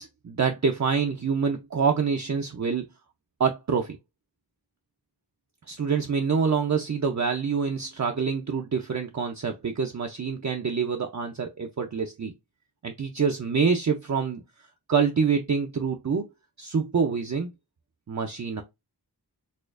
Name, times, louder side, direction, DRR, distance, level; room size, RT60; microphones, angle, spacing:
voice 1, 0.0-2.9 3.4-4.0 5.7-12.3 12.8-14.4 14.9-16.3 16.6-17.5 18.1-18.6, right 6 dB, 45° right, 0.5 m, -26 dB
4.2 x 2.4 x 2.4 m
wide cardioid pair, 45°, 40 cm